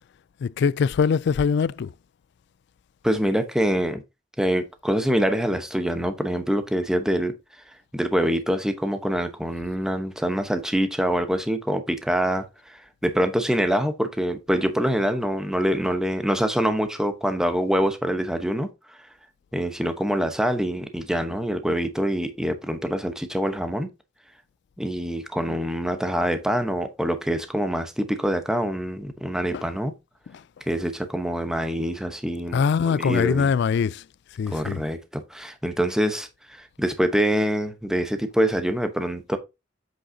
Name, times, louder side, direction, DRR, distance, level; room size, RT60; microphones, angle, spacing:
voice 1, 0.4-1.9 29.5-29.7 32.5-34.0 34.4-34.8, left 6 dB, 60° left, 0.3 m, -22 dB
voice 2, 3.0-4.0 4.4-7.3 7.9-19.0 19.5-23.9 24.8-29.9 30.7-33.5 34.5-39.4, equal, 5° right, 0.9 m, -25 dB
7.8 x 6.3 x 2.7 m
head